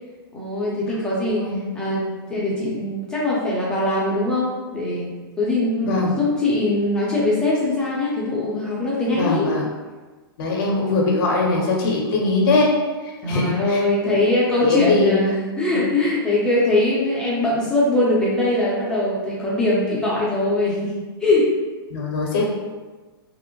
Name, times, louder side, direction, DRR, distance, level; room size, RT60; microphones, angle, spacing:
voice 1, 0.3-1.5 1.7-5.1 5.4-9.5 13.2-20.9 21.2-21.5, left 2 dB, 5° left, -7 dB, 0.6 m, -21 dB
voice 2, 5.8-6.2 9.1-9.7 10.4-12.8 13.0-14.2 14.6-15.2 21.9-22.5, left 3 dB, 55° left, -1 dB, 0.7 m, -21 dB
2.5 x 2.0 x 2.9 m, 1.3 s
hypercardioid pair, 140°, 13 cm